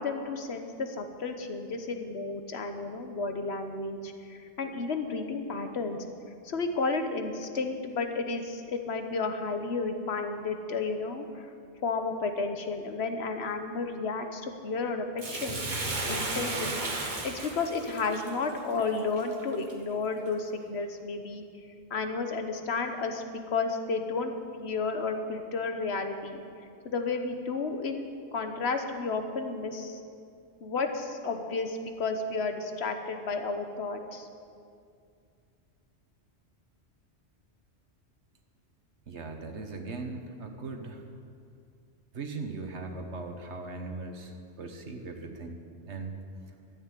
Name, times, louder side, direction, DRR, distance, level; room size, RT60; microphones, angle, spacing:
voice 1, 0.0-6.0 6.4-11.5 11.8-21.4 21.9-24.3 24.6-26.4 26.8-30.0 30.6-34.3, left 4 dB, 65° left, 6 dB, 1.3 m, -32 dB
Bathtub (filling or washing), 15.2-19.7 20.3-20.4, right 2 dB, 45° right, 1.5 m, -34 dB
voice 2, 39.1-41.0 42.1-45.6 45.9-46.2, right 3 dB, 75° right, 4 dB, 1.5 m, -39 dB
13.0 x 9.0 x 8.4 m, 2.4 s
omnidirectional pair, 1.2 m